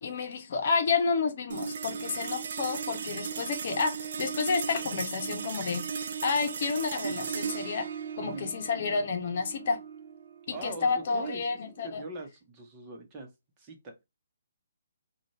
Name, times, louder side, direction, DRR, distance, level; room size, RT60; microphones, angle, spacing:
voice 1, 0.0-5.8 6.2-7.9 8.2-9.8 10.5-12.0, left 5 dB, 50° left, 0.9 m, -30 dB
sound 1, 1.5-12.1, right 6 dB, 60° right, 0.4 m, -37 dB
voice 2, 8.2-8.6 10.5-11.6 11.8-13.3 13.6-14.0, right 3 dB, 25° right, 1.1 m, -41 dB
3.8 x 2.4 x 3.2 m
hypercardioid pair, 150°, 0 cm